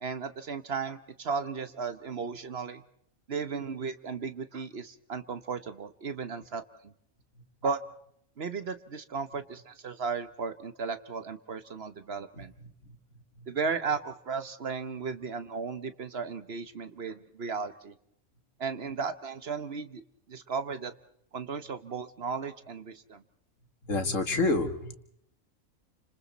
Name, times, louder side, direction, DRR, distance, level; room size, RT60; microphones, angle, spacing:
voice 1, 0.0-2.8 3.3-6.9 7.6-7.8 8.4-12.5 13.5-17.9 18.6-20.0 20.3-20.9 21.3-23.2, right 5 dB, 50° right, 11 dB, 1.2 m, -35 dB
voice 2, 12.4-13.0 13.4-13.5 23.8-24.9, left 3 dB, 65° left, 7 dB, 2.2 m, -29 dB
29.5 x 26.5 x 4.1 m, 0.71 s
omnidirectional pair, 1.4 m